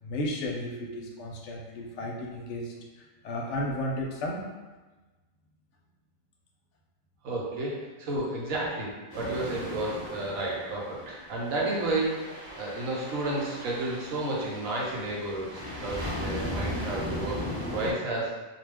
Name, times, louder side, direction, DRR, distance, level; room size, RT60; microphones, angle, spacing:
voice 1, 0.0-4.5, left 1 dB, 65° left, -1 dB, 0.8 m, -34 dB
voice 2, 7.2-17.4 17.7-18.4, right 2 dB, 75° right, -3 dB, 1.1 m, -32 dB
sound 1, 9.1-17.9, equal, 20° right, 0.8 m, -37 dB
2.4 x 2.3 x 3.3 m, 1.2 s
omnidirectional pair, 1.5 m